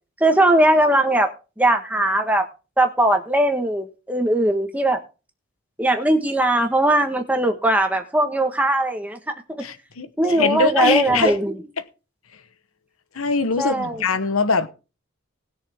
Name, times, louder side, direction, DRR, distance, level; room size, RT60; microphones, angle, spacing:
voice 1, 0.2-2.4 2.8-5.0 5.8-9.2 9.5-9.6 10.2-11.5 13.6-14.0, right 1 dB, 5° right, 1.4 m, -19 dB
voice 2, 9.6-11.4 13.1-14.7, left 4 dB, 85° left, 1.0 m, -22 dB
19.5 x 6.6 x 3.6 m
head